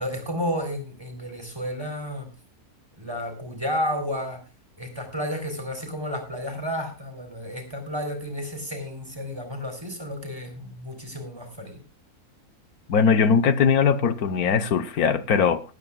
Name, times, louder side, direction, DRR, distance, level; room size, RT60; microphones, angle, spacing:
voice 1, 0.0-2.3 3.0-4.4 4.8-11.8, equal, 15° right, 3.7 m, -32 dB
voice 2, 12.9-15.6, left 6 dB, 90° left, 1.5 m, -20 dB
19.5 x 13.5 x 2.3 m
omnidirectional pair, 1.5 m